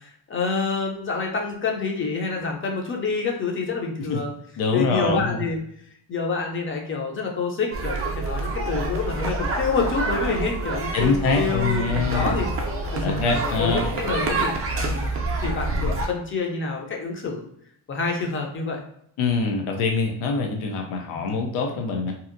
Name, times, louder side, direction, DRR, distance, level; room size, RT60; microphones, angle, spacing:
voice 1, 0.3-4.3 4.7-5.6 6.1-12.5 12.9-13.2 13.4-17.4 17.9-18.8 21.1-21.3, left 4 dB, 25° left, 1 dB, 0.5 m, -27 dB
voice 2, 4.6-5.4 10.9-12.4 13.0-13.8 19.2-22.1, left 4 dB, 85° left, 3 dB, 0.6 m, -24 dB
sound 1, 7.7-16.1, right 2 dB, 30° right, 0.4 m, -27 dB
2.8 x 2.4 x 2.5 m, 0.69 s
cardioid pair, 140°, 48 cm